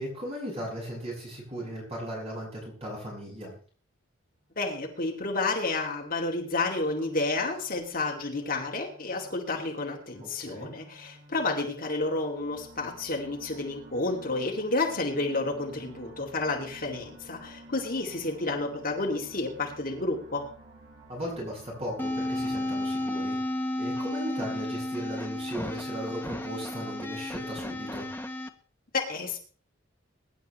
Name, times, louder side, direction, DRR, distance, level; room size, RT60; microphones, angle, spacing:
voice 1, 0.0-3.5 10.2-10.7 21.1-23.4 23.8-28.1, equal, 30° right, -3 dB, 6.4 m, -37 dB
sound 1, 4.5-22.5, right 1 dB, 60° right, 6.4 m, -53 dB
voice 2, 4.6-20.5 28.9-29.4, left 3 dB, 45° left, 1 dB, 2.5 m, -30 dB
sound 2, 22.0-28.5, left 1 dB, 10° left, 1.2 m, -33 dB
23.0 x 11.0 x 3.2 m, 0.42 s
head